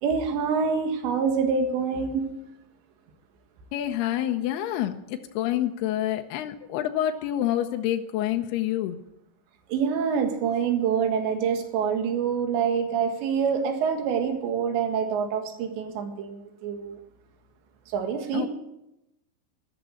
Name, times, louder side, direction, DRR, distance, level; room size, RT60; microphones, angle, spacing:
voice 1, 0.0-2.3 9.7-17.0 17.9-18.5, right 6 dB, 70° right, 5 dB, 3.9 m, -26 dB
voice 2, 3.7-9.0 18.3-18.5, left 12 dB, 80° left, 5 dB, 2.4 m, -27 dB
13.5 x 11.0 x 9.1 m, 0.86 s
omnidirectional pair, 5.4 m